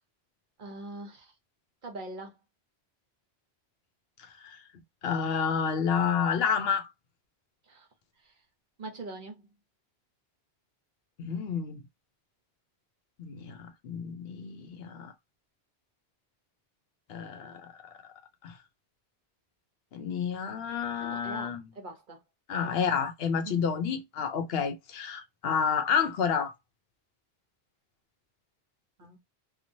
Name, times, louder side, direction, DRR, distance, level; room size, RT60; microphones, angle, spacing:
voice 1, 0.6-1.3 1.8-2.3 7.7-7.9 8.2-8.3 8.8-9.4 21.0-22.2 23.4-23.7 29.0-29.2, right 2 dB, 50° right, 1.0 m, -42 dB
voice 2, 5.0-6.9 11.2-11.8 13.2-15.1 17.1-17.9 18.4-18.6 19.9-21.7 22.5-26.5, left 6 dB, 70° left, 0.8 m, -30 dB
2.9 x 2.3 x 2.6 m
omnidirectional pair, 1.1 m